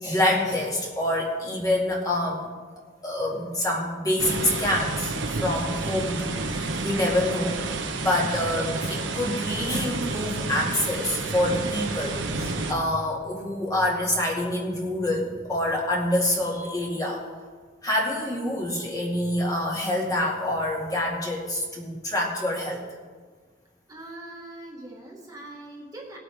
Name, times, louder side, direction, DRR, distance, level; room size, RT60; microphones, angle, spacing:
voice 1, 0.0-2.5 3.0-17.2 17.8-22.8, left 1 dB, 20° left, -3 dB, 2.1 m, -26 dB
sound 1, 4.2-12.7, right 3 dB, 75° right, 1.1 m, -30 dB
voice 2, 23.9-26.2, right 1 dB, 20° right, -3 dB, 1.7 m, -42 dB
19.0 x 8.4 x 3.5 m, 1.5 s
head